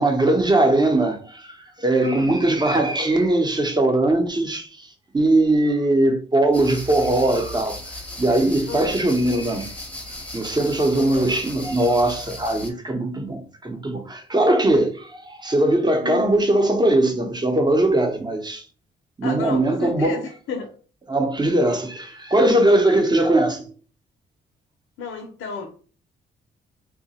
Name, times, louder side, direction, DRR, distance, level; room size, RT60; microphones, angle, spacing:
voice 1, 0.0-4.9 5.1-7.8 8.2-9.7 10.3-18.6 19.2-20.2 21.1-23.6, right 1 dB, 20° right, 0.8 m, -20 dB
voice 2, 2.0-2.4 8.7-9.0 10.9-11.3 16.0-16.4 19.2-20.7 25.0-25.7, left 5 dB, 85° left, 0.6 m, -32 dB
sound 1, 6.5-12.7, left 1 dB, 5° left, 0.8 m, -36 dB
2.9 x 2.1 x 4.1 m
cardioid pair, 95°, 20 cm